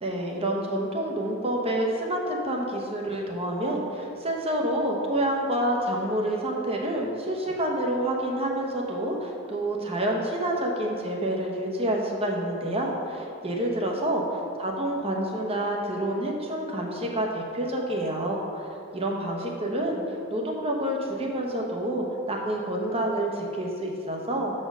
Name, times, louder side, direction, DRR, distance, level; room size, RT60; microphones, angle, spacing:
voice 1, 0.0-14.2 14.6-18.6 18.9-20.0 20.3-24.5, right 1 dB, 30° right, 0 dB, 0.9 m, -28 dB
6.8 x 4.4 x 6.0 m, 2.7 s
head